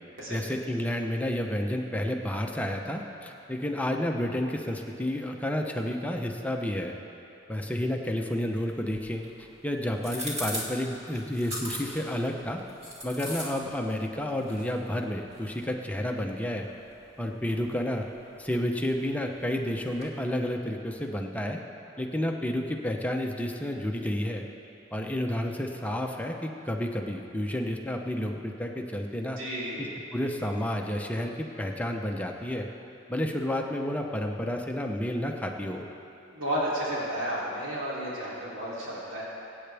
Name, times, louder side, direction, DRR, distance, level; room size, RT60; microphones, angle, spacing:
voice 1, 0.3-7.0 7.5-12.6 13.0-16.7 17.2-18.1 18.4-21.6 22.0-24.5 24.9-29.4 30.1-32.7 33.1-35.9, left 1 dB, 10° left, 2 dB, 0.8 m, -30 dB
sound 1, 8.5-20.2, equal, 30° right, 2.1 m, -42 dB
voice 2, 29.4-29.9 36.3-39.2, equal, 80° right, -8 dB, 3.2 m, -32 dB
23.5 x 8.8 x 3.5 m, 2.8 s
head